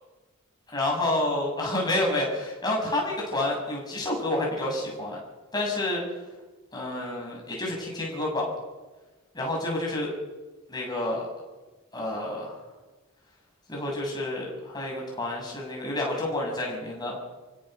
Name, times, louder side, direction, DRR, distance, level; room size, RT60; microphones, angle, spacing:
voice 1, 0.7-5.2 5.5-6.0 6.7-8.5 9.3-10.1 10.7-11.2 11.9-12.6 13.7-17.2, left 1 dB, 20° left, -2 dB, 7.1 m, -29 dB
29.0 x 16.5 x 6.8 m, 1.2 s
head